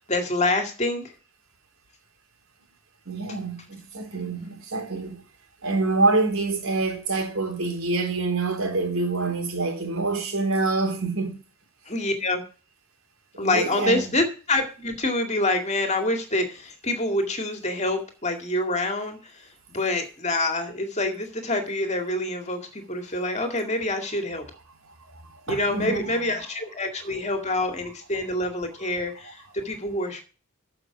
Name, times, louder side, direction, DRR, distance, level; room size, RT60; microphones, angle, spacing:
voice 1, 0.1-1.1 11.9-12.4 13.4-24.4 25.5-30.2, left 2 dB, 30° left, 2.1 m, -26 dB
voice 2, 3.1-5.2 5.6-11.4 13.3-14.0 25.5-26.1, right 3 dB, 75° right, 3.6 m, -26 dB
13.5 x 5.9 x 5.9 m
head